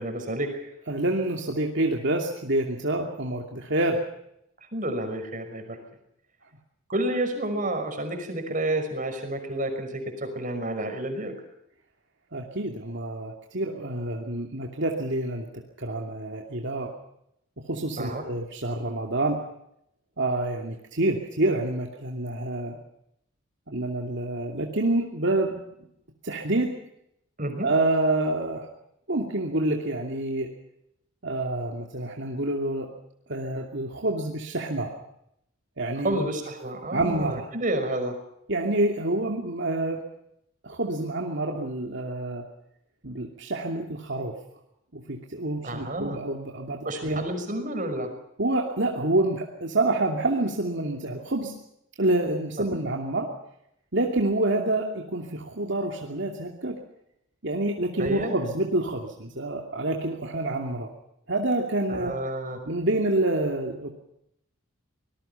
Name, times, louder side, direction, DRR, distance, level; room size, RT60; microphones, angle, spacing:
voice 1, 0.0-0.7 4.7-5.8 6.9-11.3 18.0-18.2 27.4-27.7 36.0-38.1 45.6-46.2 46.8-48.1 52.7-52.8 58.0-58.3 61.9-62.6, right 1 dB, 40° right, 6 dB, 5.7 m, -30 dB
voice 2, 0.9-4.0 12.3-15.5 15.8-16.9 17.7-19.4 20.2-22.8 23.7-25.6 26.2-26.7 27.6-28.7 29.1-30.5 31.2-32.9 33.3-34.9 35.8-36.2 36.9-37.5 38.5-40.1 40.6-42.4 43.0-44.3 44.9-47.2 48.4-51.5 52.0-53.3 53.9-56.8 57.4-60.9 61.3-62.1 62.7-63.9, right 2 dB, 60° right, 1 dB, 2.7 m, -27 dB
25.0 x 20.5 x 5.7 m, 0.77 s
head